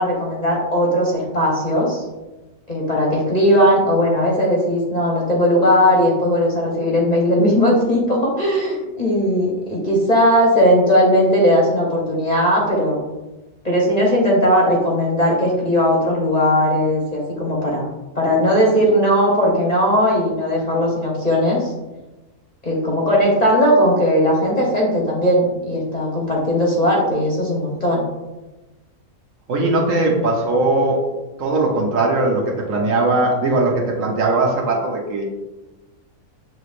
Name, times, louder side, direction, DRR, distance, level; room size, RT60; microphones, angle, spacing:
voice 1, 0.0-2.0 2.7-13.0 13.6-17.9 18.1-21.7 22.6-28.0 30.1-30.3, equal, 35° left, -3 dB, 0.8 m, -18 dB
voice 2, 29.5-31.1 31.4-35.2, right 2 dB, 65° right, -1 dB, 1.1 m, -19 dB
6.7 x 3.1 x 2.5 m, 1.1 s
omnidirectional pair, 1.6 m